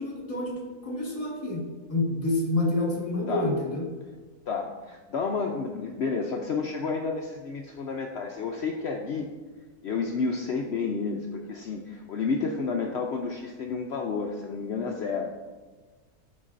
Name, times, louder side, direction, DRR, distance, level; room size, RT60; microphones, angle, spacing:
voice 1, 0.0-1.6 1.9-3.9, left 2 dB, 25° left, -2 dB, 1.5 m, -28 dB
voice 2, 4.5-9.3 9.8-15.3, left 4 dB, 70° left, 1 dB, 0.6 m, -30 dB
12.0 x 4.5 x 2.5 m, 1.3 s
omnidirectional pair, 1.6 m